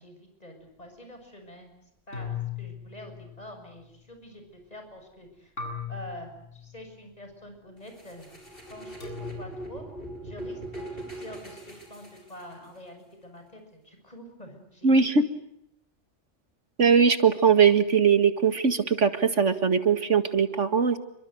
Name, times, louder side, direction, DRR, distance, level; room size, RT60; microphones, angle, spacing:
voice 1, 0.0-1.8 2.1-5.5 5.9-8.2 8.7-9.8 10.2-15.1, left 1 dB, 30° left, 5 dB, 7.0 m, -46 dB
sound 1, 2.1-3.9 5.6-7.0 9.0-9.4, left 7 dB, 75° left, 8.5 m, -38 dB
sound 2, 7.8-12.8, right 1 dB, 50° left, 8.2 m, -41 dB
voice 2, 14.8-15.3 16.8-21.0, right 6 dB, 75° right, 10 dB, 2.2 m, -21 dB
29.0 x 24.5 x 7.9 m, 0.74 s
omnidirectional pair, 1.2 m